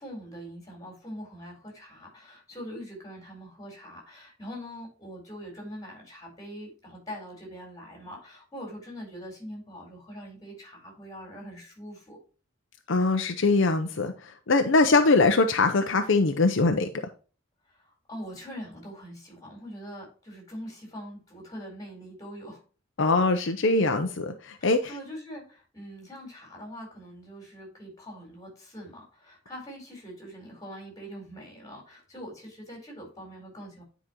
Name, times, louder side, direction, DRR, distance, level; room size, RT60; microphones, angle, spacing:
voice 1, 0.0-12.2 17.7-22.6 24.6-33.8, equal, 20° left, 0 dB, 4.1 m, -43 dB
voice 2, 12.9-16.9 23.0-24.9, left 3 dB, 65° left, 6 dB, 0.7 m, -22 dB
10.0 x 5.1 x 3.0 m, 0.36 s
head